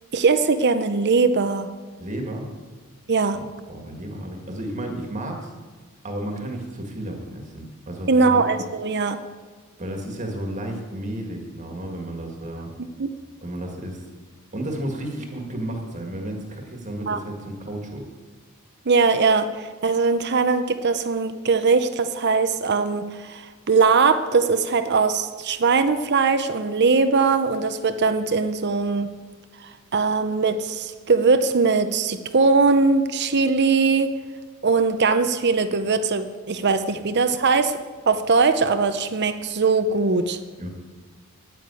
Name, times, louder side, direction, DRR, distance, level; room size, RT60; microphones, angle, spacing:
voice 1, 0.1-1.7 3.1-3.4 8.1-9.2 13.0-13.1 17.1-17.2 18.9-29.1 29.9-34.2 34.6-37.8 38.1-40.4, right 4 dB, 50° right, 10 dB, 0.7 m, -20 dB
voice 2, 2.0-2.5 3.3-5.5 6.0-8.4 9.8-12.7 13.4-14.0 14.5-18.1 37.0-37.1 40.6-40.7, right 1 dB, 35° right, 2 dB, 1.8 m, -32 dB
10.0 x 9.5 x 8.3 m, 1.4 s
head